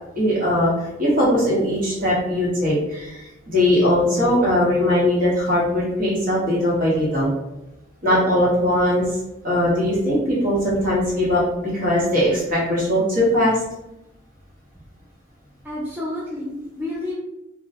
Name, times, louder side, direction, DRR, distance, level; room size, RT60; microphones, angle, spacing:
voice 1, 0.2-0.7 1.0-7.3 8.0-9.1 9.4-13.6, left 1 dB, 40° right, -6 dB, 1.0 m, -20 dB
voice 2, 15.6-17.1, left 1 dB, 5° right, -8 dB, 0.3 m, -30 dB
2.2 x 2.1 x 2.7 m, 0.93 s
head